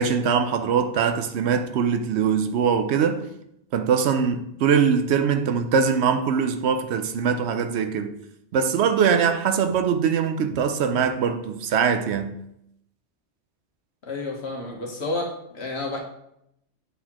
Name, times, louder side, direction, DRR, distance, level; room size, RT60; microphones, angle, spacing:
voice 1, 0.0-3.3 3.7-8.2 8.5-12.4, right 6 dB, 75° right, 0.8 m, -22 dB
voice 2, 14.0-16.0, left 2 dB, 65° left, 1.4 m, -30 dB
8.4 x 4.1 x 2.9 m
omnidirectional pair, 1.2 m